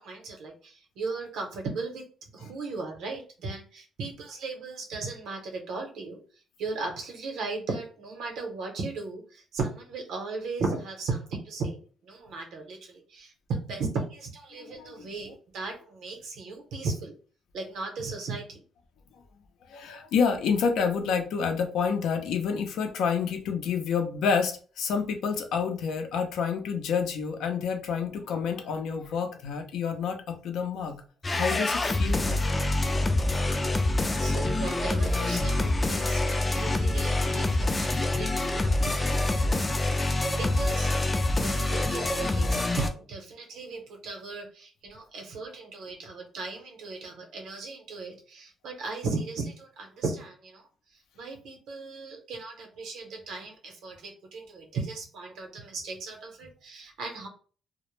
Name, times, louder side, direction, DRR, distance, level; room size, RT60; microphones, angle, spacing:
voice 1, 0.0-6.2 6.6-17.1 17.5-18.6 34.2-40.9 41.4-50.7 51.1-57.3, right 3 dB, 80° right, 0.7 m, -36 dB
voice 2, 14.6-15.1 19.7-31.0 31.3-32.4, left 6 dB, 80° left, 0.5 m, -28 dB
sound 1, 31.2-42.9, left 2 dB, 25° left, 0.4 m, -26 dB
2.0 x 2.0 x 3.1 m
cardioid pair, 90°, 0 cm